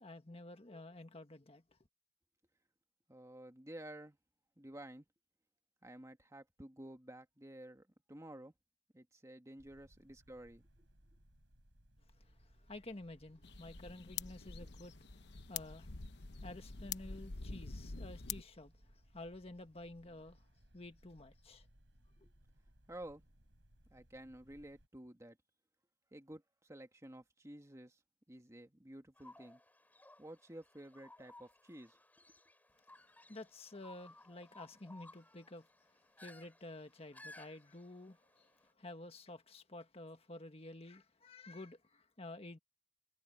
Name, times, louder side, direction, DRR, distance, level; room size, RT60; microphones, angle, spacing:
voice 1, 0.0-1.6 12.2-15.0 15.5-15.9 16.4-20.4 20.7-21.7 33.3-35.7 36.2-38.5 38.8-42.6, left 2 dB, 35° left, 1.5 m, -51 dB
voice 2, 3.1-4.2 4.6-5.1 5.8-8.5 8.9-10.6 22.2-22.3 22.9-23.2 23.9-25.4 26.1-28.0 28.3-29.6 30.2-32.0, right 1 dB, 15° right, 1.8 m, -52 dB
sound 1, 9.6-24.9, equal, 75° right, 5.5 m, -66 dB
sound 2, 13.4-18.4, left 6 dB, 65° left, 1.0 m, -46 dB
sound 3, 29.2-38.7, left 2 dB, 10° left, 6.1 m, -60 dB
head